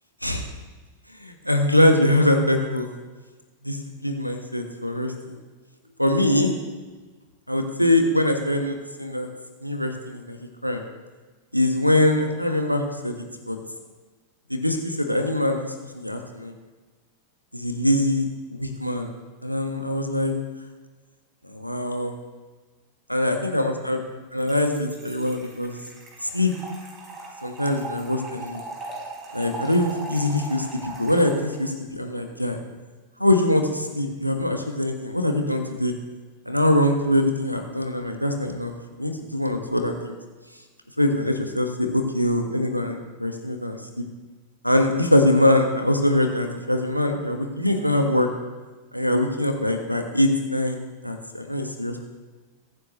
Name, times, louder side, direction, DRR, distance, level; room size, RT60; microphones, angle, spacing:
voice 1, 1.2-2.9 3.6-5.4 6.0-6.5 7.5-9.3 9.6-10.8 11.5-13.1 13.5-13.6 14.5-16.5 17.5-19.1 19.4-20.3 21.5-22.1 23.1-24.0 24.3-25.8 26.2-26.5 27.4-28.6 29.3-32.6 33.2-35.9 36.4-38.7 39.0-40.2 41.0-44.0 44.6-48.3 48.9-52.0, left 1 dB, 90° left, 4 dB, 1.4 m, -23 dB
Trickle dribble / Fill (with liquid), 24.4-31.7, right 2 dB, 25° right, 4.7 m, -39 dB
22.0 x 9.7 x 3.2 m, 1.3 s
figure-of-eight pair, 90°, 0 cm